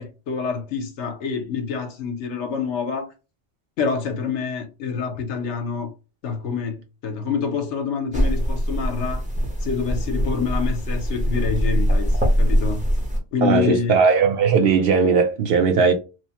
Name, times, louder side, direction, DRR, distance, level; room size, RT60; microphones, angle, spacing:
voice 1, 0.0-3.1 3.8-5.9 6.2-9.2 9.6-12.1 12.4-12.9 13.3-14.0, left 6 dB, 75° left, 1.0 m, -26 dB
sound 1, 8.1-13.2, equal, 10° right, 0.5 m, -22 dB
voice 2, 13.4-15.9, right 5 dB, 65° right, 0.7 m, -18 dB
3.1 x 2.0 x 2.8 m
omnidirectional pair, 1.2 m